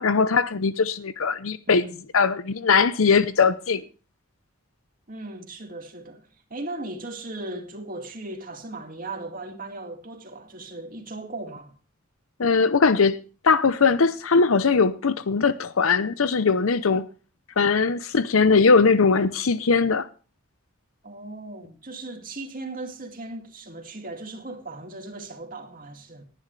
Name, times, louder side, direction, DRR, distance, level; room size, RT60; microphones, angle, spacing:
voice 1, 0.0-1.8 2.1-3.8 12.4-13.2 13.4-17.1 17.6-20.1, left 4 dB, 80° left, 0.7 m, -20 dB
voice 2, 1.7-2.0 5.1-11.7 21.0-26.2, right 2 dB, 40° right, 2.3 m, -37 dB
19.0 x 10.5 x 3.2 m
head